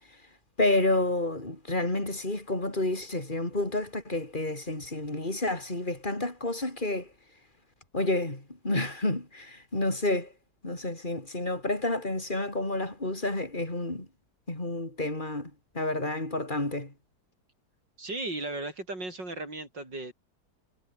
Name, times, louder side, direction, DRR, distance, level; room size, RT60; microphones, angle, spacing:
voice 1, 0.6-7.1 7.9-10.3 10.6-14.1 14.5-16.9, left 2 dB, 25° left, 5.6 m, -30 dB
voice 2, 18.0-20.1, right 2 dB, 90° right, 8.3 m, -36 dB
omnidirectional pair, 1.9 m